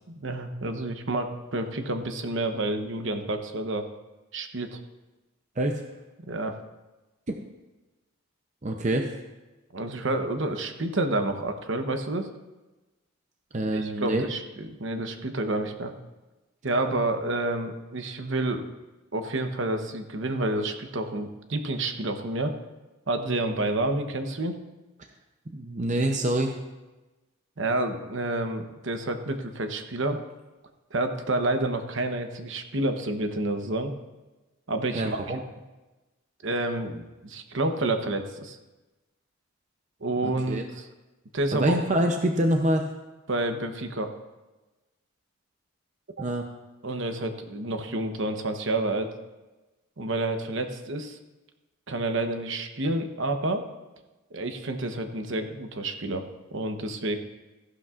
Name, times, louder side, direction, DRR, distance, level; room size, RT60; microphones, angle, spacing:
voice 1, 0.1-3.9 4.3-4.8 6.2-6.6 9.7-12.3 13.7-15.9 16.6-18.7 19.1-22.5 23.1-24.6 27.6-30.2 30.9-33.9 34.7-35.2 36.4-38.6 40.0-40.8 41.3-41.7 43.3-44.1 46.2-46.3 46.8-49.1 50.0-51.2 51.9-53.6 54.3-56.2 56.5-57.1, right 2 dB, 60° right, 6 dB, 0.9 m, -29 dB
voice 2, 8.6-9.1 13.5-14.3 25.5-26.6 34.9-35.4 40.2-40.6 41.5-42.8 46.2-46.4, right 1 dB, 35° right, 3 dB, 0.6 m, -26 dB
15.0 x 11.5 x 2.5 m, 1.1 s
head